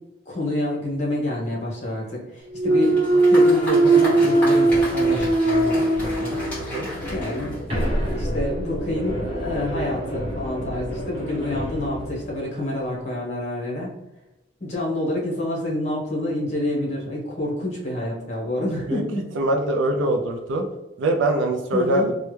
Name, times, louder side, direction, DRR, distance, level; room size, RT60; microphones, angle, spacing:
voice 1, 0.3-3.0 3.3-13.9 14.6-19.2 21.7-22.1, left 1 dB, 35° left, -3 dB, 1.0 m, -28 dB
Thump thud, 2.5-6.6 7.0-11.7, right 2 dB, 30° right, 1.1 m, -21 dB
Applause, 2.7-8.3, equal, 10° left, 1.4 m, -35 dB
sound 1, 4.7-12.3, left 1 dB, 80° left, 0.5 m, -34 dB
voice 2, 19.4-20.6 21.0-22.1, right 2 dB, 80° right, 4 dB, 0.3 m, -22 dB
3.2 x 2.1 x 3.1 m, 0.99 s
head